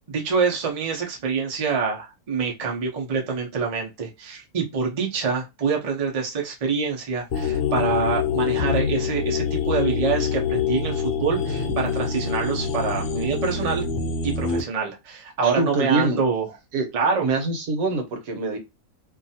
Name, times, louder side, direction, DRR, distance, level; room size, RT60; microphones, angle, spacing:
voice 1, 0.1-13.9 14.2-16.5 16.9-17.3, right 5 dB, 50° right, 0.4 m, -26 dB
sound 1, 7.3-14.6, left 6 dB, 70° left, 0.6 m, -25 dB
voice 2, 15.4-16.2 16.7-16.9 17.2-18.6, right 3 dB, 70° right, 1.2 m, -24 dB
2.6 x 2.3 x 2.7 m
omnidirectional pair, 1.6 m